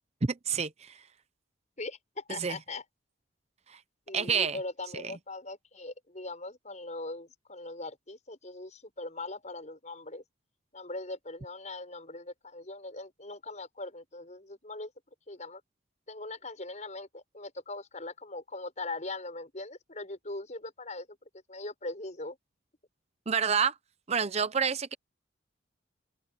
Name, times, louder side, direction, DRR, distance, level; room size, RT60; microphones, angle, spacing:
voice 1, 0.2-1.0 2.4-2.6 3.7-3.8 4.1-4.6 23.3-23.7 24.1-24.9, right 6 dB, 35° right, 0.7 m, -28 dB
voice 2, 1.8-2.8 4.1-10.2 10.7-14.9 15.3-15.6 16.1-21.2 21.5-22.4, left 2 dB, 40° left, 7.1 m, -40 dB
open air
head